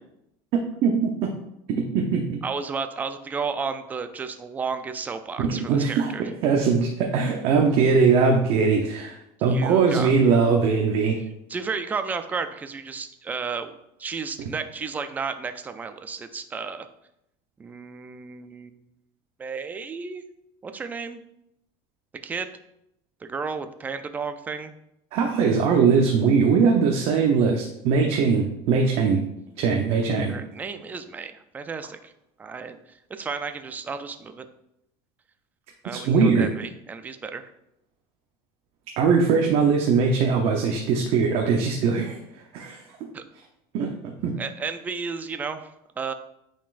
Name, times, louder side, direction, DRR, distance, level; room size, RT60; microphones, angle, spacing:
voice 1, 0.5-1.3 1.7-2.4 5.4-6.1 6.4-11.2 25.1-29.2 29.6-30.3 35.9-36.5 39.0-42.2 42.5-42.8 43.7-44.3, right 5 dB, 45° right, 1 dB, 0.7 m, -21 dB
voice 2, 2.4-6.3 9.5-10.3 11.5-13.7 14.0-16.9 17.6-18.8 19.4-20.2 20.6-21.2 22.2-22.5 23.2-24.7 30.3-32.1 32.4-34.5 35.8-37.5 43.1-43.2 44.4-46.1, right 5 dB, 10° right, 9 dB, 0.3 m, -33 dB
9.0 x 4.3 x 2.5 m, 0.81 s
cardioid pair, 155°, 13 cm